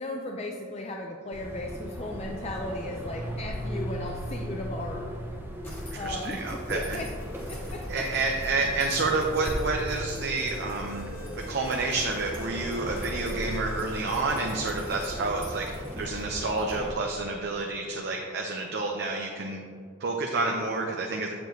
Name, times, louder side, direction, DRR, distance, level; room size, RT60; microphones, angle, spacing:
voice 1, 0.0-5.2 5.9-6.4 6.7-7.1 7.5-8.0, left 2 dB, 30° left, 1 dB, 0.4 m, -36 dB
sound 1, 1.3-16.9, equal, 10° right, 0.7 m, -37 dB
sound 2, 5.6-17.1, equal, 10° left, 1.2 m, -46 dB
voice 2, 5.9-7.0 7.9-11.1 11.5-19.6 20.0-21.3, right 3 dB, 50° right, 0 dB, 0.6 m, -29 dB
Alarm, 9.9-15.2, left 1 dB, 60° left, 1.4 m, -46 dB
8.1 x 6.8 x 3.1 m, 2.1 s
head